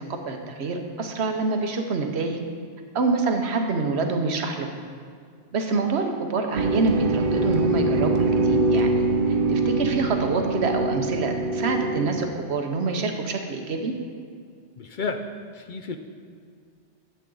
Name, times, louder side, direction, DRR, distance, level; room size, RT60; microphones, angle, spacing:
voice 1, 0.0-2.4 2.9-4.7 5.5-9.0 9.5-13.9, right 3 dB, 75° right, 4 dB, 1.1 m, -26 dB
sound 1, 6.5-12.3, right 2 dB, 55° right, 0.7 m, -23 dB
voice 2, 14.8-15.2 15.5-16.0, left 4 dB, 60° left, 6 dB, 0.6 m, -31 dB
10.5 x 7.5 x 3.9 m, 2.1 s
omnidirectional pair, 1.1 m